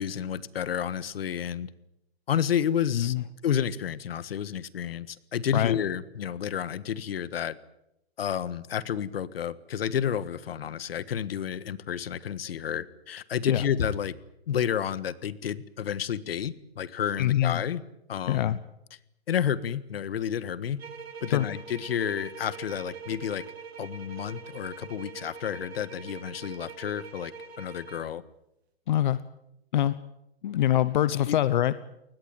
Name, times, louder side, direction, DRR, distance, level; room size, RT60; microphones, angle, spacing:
voice 1, 0.0-1.7 2.3-3.1 3.4-7.6 8.2-14.1 14.5-17.8 18.1-18.6 19.3-20.8 21.2-23.4 23.8-28.2 31.2-31.4, left 9 dB, 70° left, 16 dB, 1.6 m, -30 dB
voice 2, 17.2-17.6 18.3-18.6 21.3-21.5 28.9-29.2 29.7-30.0 30.4-31.7, left 12 dB, 50° left, 15 dB, 0.9 m, -24 dB
sound 1, 20.8-28.2, right 5 dB, 85° right, 3.4 m, -43 dB
22.5 x 19.5 x 9.0 m, 0.83 s
hypercardioid pair, 160°, 31 cm